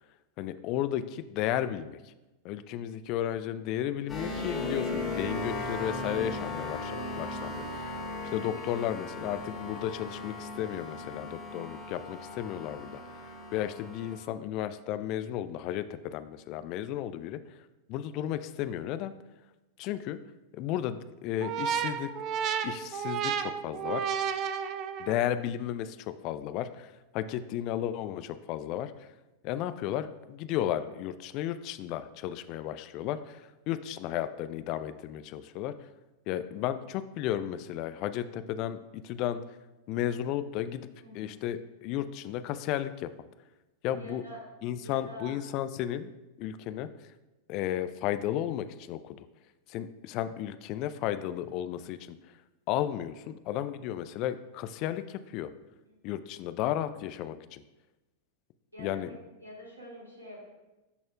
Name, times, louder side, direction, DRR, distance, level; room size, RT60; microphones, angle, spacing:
voice 1, 0.4-2.0 2.4-8.0 8.3-13.0 13.5-17.4 17.9-19.1 19.8-20.2 20.5-22.1 22.6-24.1 25.0-29.1 29.4-35.7 36.3-39.4 39.9-40.9 41.1-43.1 43.8-44.2 44.6-46.1 46.4-46.9 47.5-49.3 49.7-52.0 52.7-55.5 56.0-57.6 58.8-59.1, left 11 dB, 40° left, 12 dB, 0.3 m, -33 dB
sound 1, 4.1-14.2, left 2 dB, 15° left, 2.0 m, -37 dB
sound 2, 21.4-25.3, right 8 dB, 35° right, 0.4 m, -32 dB
voice 2, 41.0-41.4 43.9-44.4 44.7-45.3 55.9-56.0 58.7-59.0 59.4-60.5, left 1 dB, 80° right, -3 dB, 1.9 m, -46 dB
12.5 x 4.2 x 2.3 m, 1.0 s
figure-of-eight pair, 90°, 0 cm